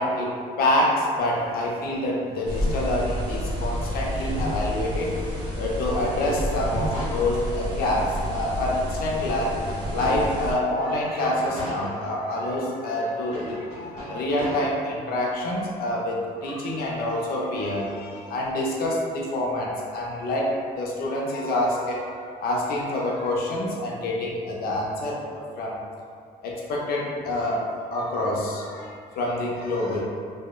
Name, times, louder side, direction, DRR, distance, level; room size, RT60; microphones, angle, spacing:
voice 1, 0.0-5.1 5.6-9.6 9.9-25.8 26.4-27.7 27.9-30.0, left 1 dB, 65° left, -3 dB, 0.5 m, -27 dB
sound 1, 2.4-10.5, equal, 25° right, 0.7 m, -30 dB
sound 2, 6.1-7.8 8.2-8.3 8.8-10.6 11.2-12.6 13.2-14.5, left 1 dB, 20° left, 1.5 m, -38 dB
2.8 x 2.1 x 2.3 m, 2.2 s
cardioid pair, 110°, 17 cm